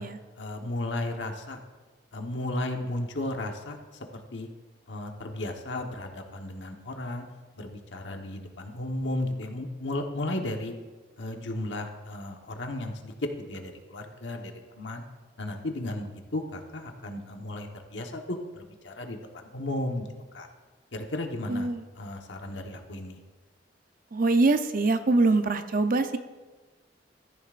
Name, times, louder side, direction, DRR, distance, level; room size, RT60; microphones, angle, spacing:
voice 1, 0.4-1.6 2.1-3.8 4.1-4.5 4.9-7.2 7.6-10.7 11.2-15.0 15.4-20.1 20.3-20.5 20.9-21.7 21.9-23.2, left 1 dB, 85° left, 3 dB, 1.2 m, -34 dB
voice 2, 21.5-21.8 24.1-26.2, right 3 dB, 50° right, 9 dB, 0.6 m, -23 dB
14.0 x 11.0 x 2.5 m, 1.3 s
head